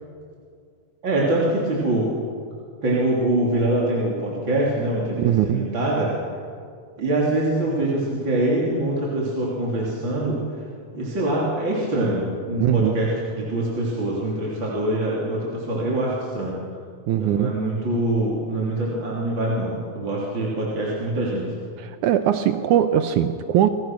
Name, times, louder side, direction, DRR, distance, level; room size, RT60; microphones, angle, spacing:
voice 1, 1.0-2.1 2.8-6.1 7.0-10.4 10.9-16.6 17.1-21.4, right 1 dB, 35° right, -5 dB, 3.8 m, -24 dB
voice 2, 5.2-5.7 12.6-13.0 17.1-17.5 21.8-23.7, right 11 dB, 75° right, 9 dB, 2.2 m, -21 dB
28.0 x 21.5 x 6.2 m, 2.2 s
omnidirectional pair, 3.6 m